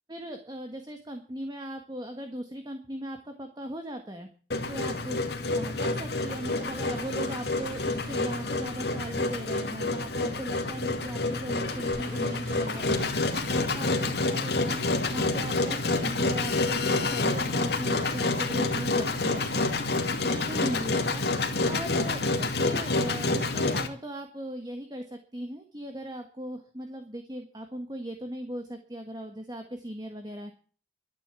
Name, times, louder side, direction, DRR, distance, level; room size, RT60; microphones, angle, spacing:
voice 1, 0.1-4.3 4.7-19.5 20.2-30.5, right 1 dB, 25° right, 5 dB, 1.6 m, -38 dB
Engine, 4.5-23.9, left 2 dB, 60° left, 2.5 m, -28 dB
sound 1, 4.7-14.4, right 2 dB, 55° right, 7.8 m, -52 dB
12.5 x 10.5 x 8.2 m, 0.42 s
head